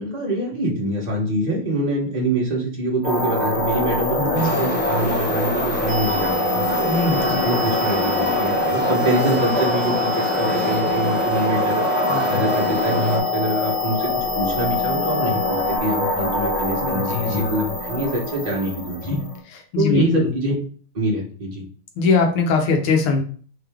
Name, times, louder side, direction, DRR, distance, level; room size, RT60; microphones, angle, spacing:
voice 1, 0.0-6.7 7.1-19.2 19.8-20.5 20.9-21.6, right 1 dB, 40° right, -3 dB, 0.6 m, -25 dB
sound 1, 3.0-19.4, left 1 dB, 30° left, 0.8 m, -26 dB
voice 2, 4.2-4.7 6.8-7.5 12.1-12.5 16.8-17.6 19.1-19.2 19.5-20.3 22.0-23.2, left 4 dB, 80° left, 3 dB, 1.8 m, -22 dB
sound 2, 4.3-13.2, left 1 dB, 15° left, 0.4 m, -25 dB
sound 3, 5.9-15.8, left 3 dB, 75° right, 0.8 m, -27 dB
3.9 x 3.8 x 3.4 m, 0.43 s
omnidirectional pair, 2.4 m